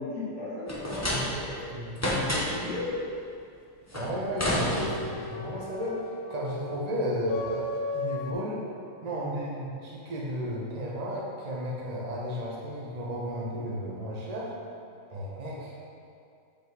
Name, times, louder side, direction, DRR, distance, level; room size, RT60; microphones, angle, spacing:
voice 1, 0.0-1.6 2.2-3.0 8.8-9.1, left 3 dB, 55° left, -7 dB, 2.0 m, -36 dB
sound 1, 0.7-1.6 1.9-2.7 3.9-5.3, equal, 25° left, 0.3 m, -29 dB
voice 2, 1.7-2.3 3.9-8.6 9.0-14.5 15.1-15.8, equal, 25° right, -4 dB, 0.9 m, -34 dB
sound 2, 4.5-8.3, left 2 dB, 75° left, 1.0 m, -37 dB
7.5 x 5.1 x 4.0 m, 2.5 s
omnidirectional pair, 2.1 m